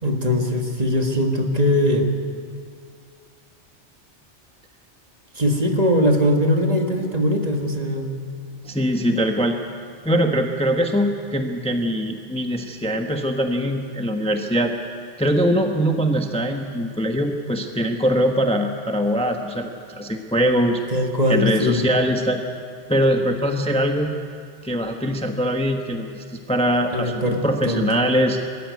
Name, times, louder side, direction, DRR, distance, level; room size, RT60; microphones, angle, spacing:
voice 1, 0.0-2.1 5.4-8.2 20.9-21.8 26.9-27.8, left 1 dB, 35° right, 3 dB, 1.8 m, -21 dB
voice 2, 8.6-9.6 10.0-14.7 15.2-20.8 21.3-22.4 22.9-24.1 24.6-28.4, equal, 5° left, 4 dB, 1.0 m, -22 dB
22.0 x 13.5 x 9.5 m, 2.2 s
omnidirectional pair, 1.2 m